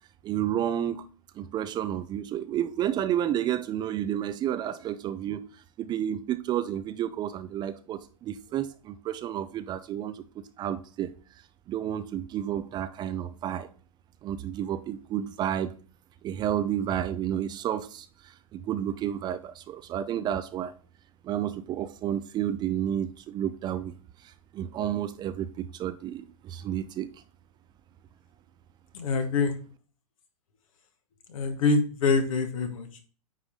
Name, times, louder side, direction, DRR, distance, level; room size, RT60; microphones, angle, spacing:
voice 1, 0.2-1.0 1.4-5.5 5.8-11.1 11.7-13.7 14.2-15.7 16.2-20.7 21.2-23.9 24.2-27.1, right 10 dB, 25° right, 0.5 m, -31 dB
voice 2, 28.9-29.6 31.3-33.1, left 4 dB, 65° left, 1.6 m, -25 dB
9.5 x 3.3 x 3.7 m
hypercardioid pair, 120°, 18 cm